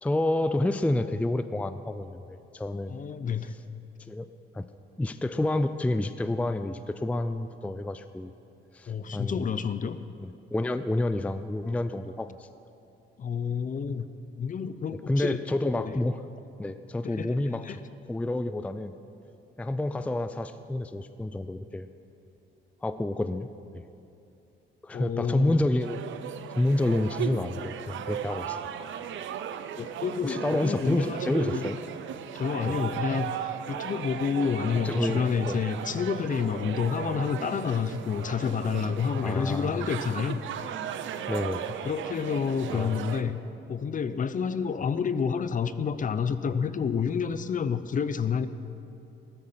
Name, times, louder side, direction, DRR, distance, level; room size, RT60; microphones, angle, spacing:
voice 1, 0.0-2.9 4.1-4.3 4.5-4.7 5.0-8.3 8.7-9.5 10.2-12.5 15.1-16.2 16.6-17.6 18.1-18.9 19.6-21.9 22.8-23.8 24.8-26.0 26.6-28.6 30.2-31.8 32.6-32.8 34.8-35.6 39.2-39.8 41.3-41.6 42.7-43.0, left 1 dB, 5° left, 11 dB, 0.4 m, -29 dB
voice 2, 2.9-3.5 8.9-10.0 13.2-14.1 14.4-15.4 15.8-16.0 17.0-17.4 17.6-17.8 24.9-25.6 29.8-31.7 32.3-40.4 41.8-43.4 43.7-48.5, left 6 dB, 40° left, 13 dB, 0.7 m, -29 dB
sound 1, 25.8-43.2, right 9 dB, 75° right, 0.7 m, -36 dB
15.0 x 13.0 x 5.7 m, 2.7 s
cardioid pair, 90°, 20 cm